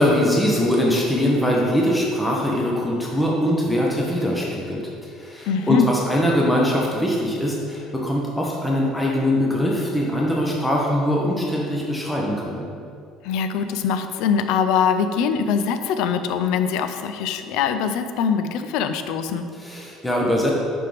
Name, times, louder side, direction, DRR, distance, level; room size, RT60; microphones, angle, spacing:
voice 1, 0.0-12.6 19.6-20.5, equal, 5° left, -3 dB, 0.8 m, -22 dB
voice 2, 5.5-5.9 13.2-19.4, left 7 dB, 75° left, 9 dB, 0.4 m, -23 dB
5.7 x 5.2 x 3.4 m, 2.4 s
cardioid pair, 125°, 0 cm